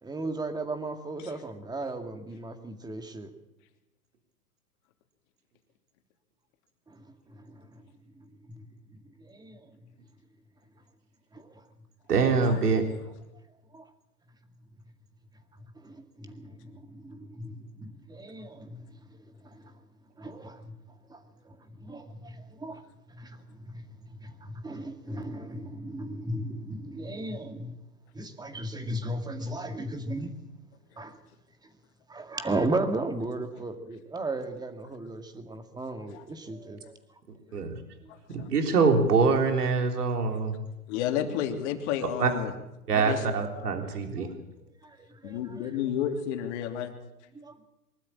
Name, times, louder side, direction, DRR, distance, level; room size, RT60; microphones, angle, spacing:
voice 1, 0.0-3.3 6.9-7.8 8.2-8.6 8.9-9.7 11.3-11.6 13.7-13.9 15.8-18.9 19.4-19.7 20.2-20.7 21.1-22.8 23.1-23.9 24.1-27.8 28.1-30.4 31.0-31.2 32.1-36.8 43.9-44.5 44.8-45.8 47.3-47.6, right 2 dB, 10° right, 7 dB, 2.0 m, -36 dB
voice 2, 12.1-12.8 37.5-37.7 38.3-40.5 42.2-42.3 42.9-44.3, right 4 dB, 80° right, 4 dB, 3.7 m, -24 dB
voice 3, 38.1-38.5 40.9-42.5 42.9-43.2 43.5-43.9 45.2-46.9, left 9 dB, 50° left, 5 dB, 3.2 m, -32 dB
23.5 x 13.0 x 8.7 m, 0.95 s
hypercardioid pair, 120°, 46 cm